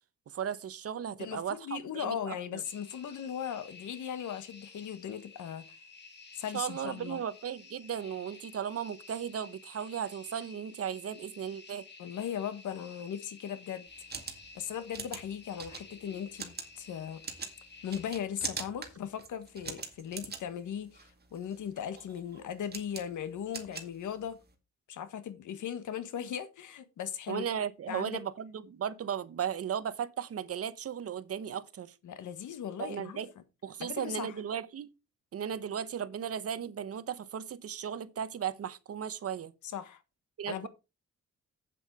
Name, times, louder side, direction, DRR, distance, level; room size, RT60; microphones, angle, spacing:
voice 1, 0.3-2.6 6.5-11.9 27.3-31.9 32.8-33.3 33.6-34.9 35.3-39.5 40.4-40.7, right 8 dB, 50° right, 0.9 m, -36 dB
voice 2, 1.2-5.6 6.4-7.2 12.0-13.9 14.5-17.2 17.8-24.4 24.9-27.4 27.9-28.2 32.0-33.2 33.8-34.3 39.7-40.0 40.5-40.7, left 9 dB, 85° left, 1.5 m, -38 dB
sound 1, 2.6-18.1, left 4 dB, 35° left, 2.6 m, -53 dB
sound 2, 13.9-24.5, right 5 dB, 35° right, 2.1 m, -44 dB
8.5 x 7.7 x 4.7 m
wide cardioid pair, 140°, 30 cm